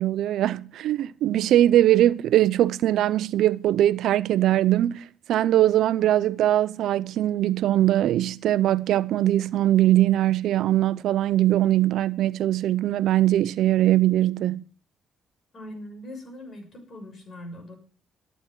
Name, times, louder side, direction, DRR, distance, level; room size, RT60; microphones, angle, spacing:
voice 1, 0.0-14.6, right 13 dB, 80° right, 0.7 m, -21 dB
voice 2, 15.5-17.8, left 1 dB, 45° left, 6.7 m, -41 dB
14.0 x 9.4 x 7.5 m
cardioid pair, 90°, 0 cm